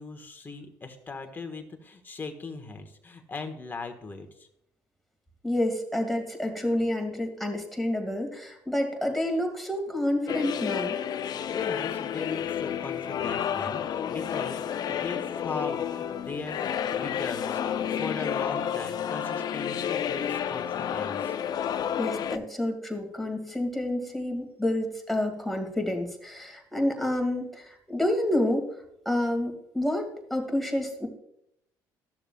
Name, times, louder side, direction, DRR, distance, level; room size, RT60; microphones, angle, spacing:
voice 1, 0.0-4.5 11.5-21.4, left 4 dB, 25° left, 5 dB, 1.3 m, -39 dB
voice 2, 5.4-11.0 22.0-28.7 29.1-31.1, left 1 dB, ahead, 2 dB, 2.1 m, -29 dB
sound 1, 10.3-22.4, left 9 dB, 55° left, 0.5 m, -30 dB
13.0 x 6.8 x 2.3 m, 0.76 s
supercardioid pair, 80°, 8 cm